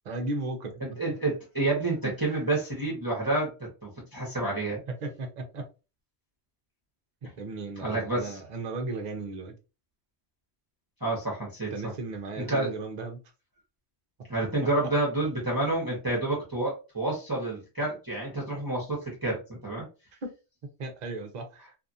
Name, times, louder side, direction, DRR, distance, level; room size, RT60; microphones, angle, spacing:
voice 1, 0.0-0.8 2.0-2.3 5.0-5.6 7.4-9.5 11.7-13.2 20.2-20.3 20.8-21.7, right 3 dB, 45° right, 5 dB, 0.6 m, -35 dB
voice 2, 0.8-4.8 7.8-8.4 11.0-11.7 12.4-12.7 14.3-19.9, right 2 dB, 20° right, -4 dB, 0.9 m, -29 dB
2.7 x 2.4 x 2.6 m, 0.30 s
omnidirectional pair, 1.2 m